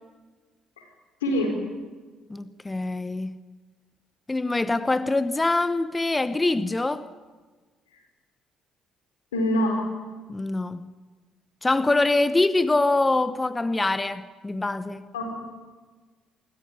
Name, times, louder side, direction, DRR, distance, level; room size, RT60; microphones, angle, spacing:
voice 1, 1.2-1.5 9.3-9.8 15.1-15.3, left 1 dB, 90° left, 4.2 m, -24 dB
voice 2, 2.3-3.3 4.3-7.1 10.3-10.9 11.6-15.1, left 2 dB, 20° left, 1.0 m, -24 dB
25.5 x 14.0 x 9.8 m
hypercardioid pair, 55°, 0 cm